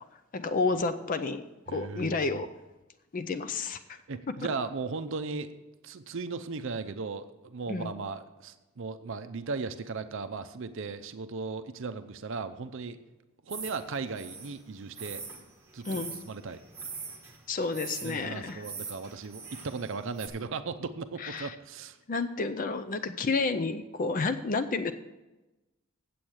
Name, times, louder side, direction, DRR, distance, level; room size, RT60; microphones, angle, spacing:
voice 1, 0.3-2.5 3.1-4.0 7.7-7.9 15.8-16.1 17.5-18.6 21.2-21.6 22.1-24.9, left 4 dB, 35° left, 10 dB, 0.4 m, -30 dB
voice 2, 1.7-2.4 3.9-5.5 5.8-13.0 13.5-15.2 15.7-16.6 18.0-22.0, right 4 dB, 60° right, 10 dB, 0.5 m, -37 dB
sound 1, 13.5-20.3, right 5 dB, 15° right, 1.4 m, -43 dB
8.7 x 7.7 x 6.3 m, 1.1 s
head